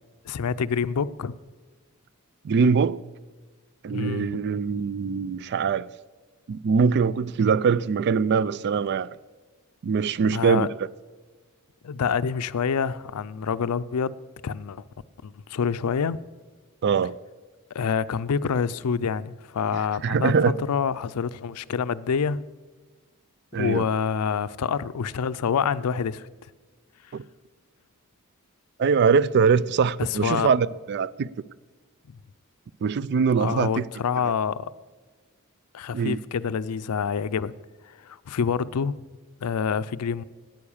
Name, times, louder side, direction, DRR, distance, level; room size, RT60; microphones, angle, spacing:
voice 1, 0.2-1.3 3.9-4.4 10.2-10.7 11.8-14.2 14.4-14.8 15.2-16.2 17.7-20.3 20.7-22.4 23.6-26.3 30.0-30.5 32.1-32.2 33.4-34.7 35.7-37.5 37.9-39.0 39.4-40.2, left 6 dB, 90° left, 0.4 m, -27 dB
voice 2, 2.4-3.0 3.8-5.9 6.5-9.1 9.8-10.7 16.8-17.1 19.7-20.5 23.5-23.9 27.1-27.2 28.8-31.3 32.8-33.9 34.2-34.3 35.9-36.2, right 5 dB, 50° right, 0.3 m, -22 dB
9.6 x 9.4 x 7.1 m
head